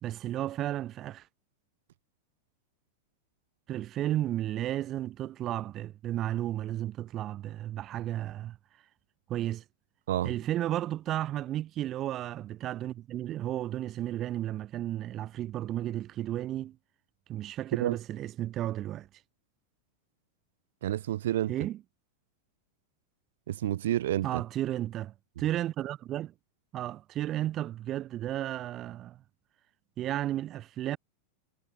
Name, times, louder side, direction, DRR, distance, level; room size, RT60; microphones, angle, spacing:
voice 1, 0.0-1.3 3.7-8.6 9.3-9.6 10.2-16.8 17.3-19.1 21.5-21.8 24.2-26.3 26.7-29.2 30.0-31.0, right 13 dB, 30° right, 3.2 m, -33 dB
voice 2, 20.8-21.5 23.5-24.4, right 13 dB, 60° right, 3.2 m, -29 dB
figure-of-eight pair, 90°, 0 cm